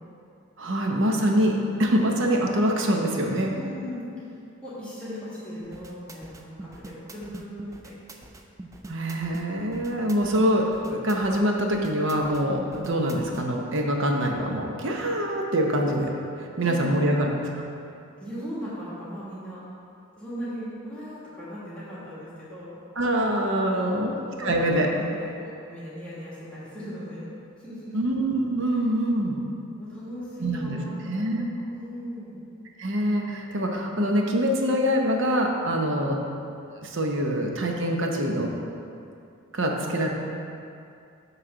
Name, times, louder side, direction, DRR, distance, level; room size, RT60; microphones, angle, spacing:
voice 1, 0.6-3.5 8.9-16.1 16.4-17.7 23.0-24.1 24.4-24.9 27.9-29.4 30.4-30.8 31.1-31.5 32.8-36.2 36.8-38.5 39.5-40.1, equal, 60° right, 1 dB, 0.8 m, -24 dB
voice 2, 3.5-4.3 4.6-7.9 16.6-16.9 18.2-19.6 20.2-22.8 23.7-27.3 27.6-28.0 28.6-28.8 29.8-31.4 31.7-32.4 39.8-39.9, equal, 5° left, -10 dB, 1.5 m, -38 dB
sound 1, 5.6-13.5, right 2 dB, 15° right, 0.3 m, -43 dB
7.4 x 3.2 x 6.0 m, 2.5 s
head